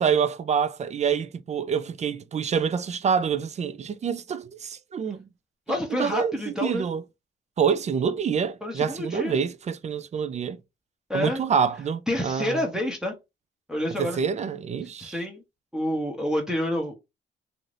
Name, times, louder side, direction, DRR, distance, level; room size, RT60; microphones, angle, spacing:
voice 1, 0.0-5.3 5.9-7.0 7.6-10.6 11.1-12.6 14.0-15.2, right 7 dB, 35° right, 0.4 m, -26 dB
voice 2, 5.7-6.9 8.6-9.4 11.1-11.4 12.1-13.1 13.7-14.2 15.0-15.4 15.7-17.0, left 1 dB, 5° right, 0.8 m, -28 dB
2.7 x 2.6 x 3.2 m
cardioid pair, 90°, 20 cm